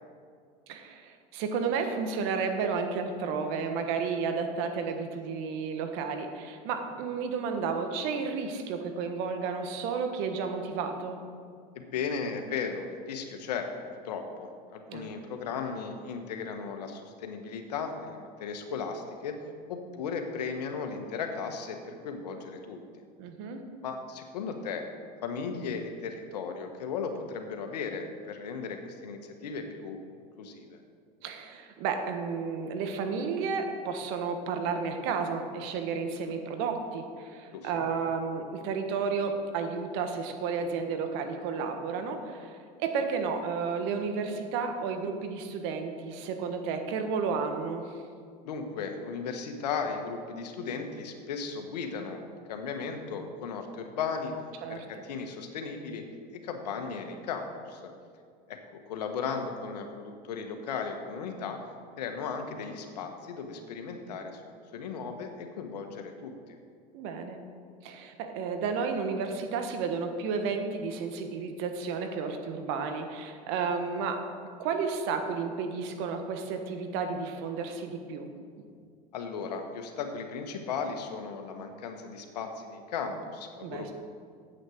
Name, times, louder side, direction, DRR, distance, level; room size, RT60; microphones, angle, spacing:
voice 1, 0.7-11.2 14.9-15.1 23.2-23.6 31.2-42.5 42.8-47.9 54.6-54.8 66.9-67.4 67.8-74.2 74.6-78.3 83.6-83.9, right 5 dB, 70° right, 5 dB, 1.4 m, -32 dB
voice 2, 11.7-13.7 14.0-19.4 19.7-22.8 23.8-24.8 25.2-30.0 30.4-30.8 37.5-37.7 48.4-54.3 54.7-56.0 56.3-57.9 58.5-61.6 62.0-66.6 79.1-83.9, left 5 dB, 90° left, 5 dB, 1.3 m, -36 dB
9.1 x 8.3 x 6.4 m, 2.2 s
hypercardioid pair, 90°, 20 cm